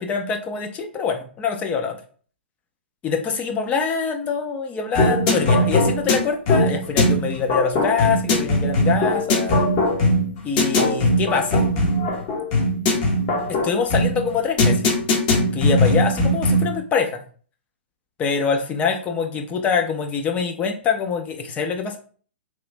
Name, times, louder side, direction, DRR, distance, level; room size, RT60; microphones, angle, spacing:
voice 1, 0.0-2.0 3.0-9.6 10.4-11.6 13.6-14.8 15.5-17.2 18.2-22.0, left 5 dB, 20° left, 4 dB, 0.5 m, -24 dB
sound 1, 4.9-16.8, left 1 dB, 40° left, 0.9 m, -20 dB
3.0 x 2.4 x 3.2 m, 0.42 s
figure-of-eight pair, 115°, 7 cm